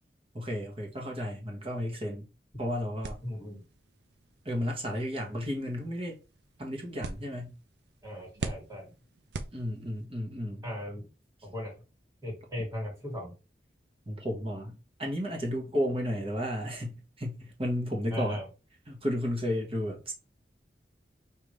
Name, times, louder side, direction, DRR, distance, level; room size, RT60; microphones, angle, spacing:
voice 1, 0.3-2.3 2.6-3.2 4.4-6.2 6.6-7.6 9.5-10.6 14.1-18.4 18.9-20.1, equal, 35° right, 1.2 m, -33 dB
sound 1, 3.0-10.2, right 3 dB, 70° right, 0.6 m, -44 dB
voice 2, 3.2-3.6 8.0-8.9 10.6-11.0 11.4-11.7 12.2-13.3 18.1-18.5, left 1 dB, 20° right, 2.0 m, -37 dB
5.2 x 2.8 x 3.2 m
head